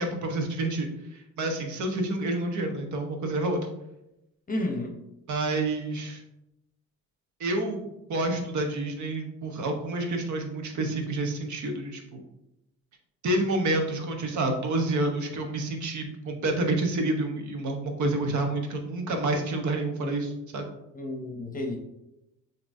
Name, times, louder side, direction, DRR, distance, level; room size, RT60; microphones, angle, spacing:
voice 1, 0.0-3.6 5.3-6.2 7.4-12.2 13.2-20.7, right 2 dB, 70° right, 4 dB, 1.0 m, -29 dB
voice 2, 4.5-5.0 20.9-21.8, left 1 dB, 30° left, 3 dB, 0.8 m, -31 dB
6.8 x 2.9 x 2.6 m, 0.89 s
cardioid pair, 90°, 30 cm